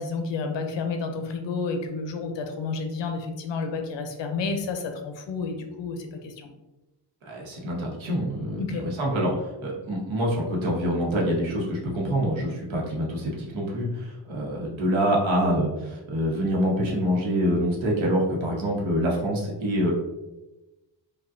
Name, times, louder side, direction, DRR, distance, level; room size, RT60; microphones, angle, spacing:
voice 1, 0.0-6.5 8.6-8.9, left 4 dB, 70° left, 5 dB, 0.7 m, -30 dB
voice 2, 7.3-9.3 9.6-19.9, equal, 85° right, -2 dB, 1.1 m, -26 dB
5.0 x 2.3 x 2.6 m, 1.0 s
wide cardioid pair, 175°, 45 cm